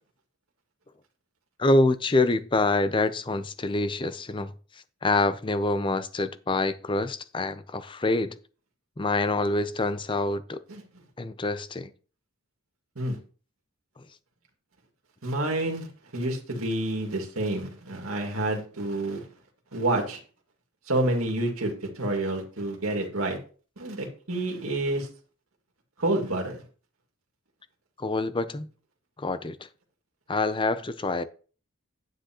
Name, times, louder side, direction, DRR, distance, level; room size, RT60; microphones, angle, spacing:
voice 1, 1.6-4.5 5.0-8.4 9.0-10.6 11.2-11.9 28.0-28.7 29.2-29.6 30.3-31.2, left 2 dB, 25° left, 0.5 m, -26 dB
voice 2, 15.2-15.9 16.1-19.3 19.7-20.2 20.9-23.4 23.8-25.1 26.0-26.6, right 2 dB, 75° right, 2.2 m, -28 dB
9.8 x 9.1 x 3.0 m
head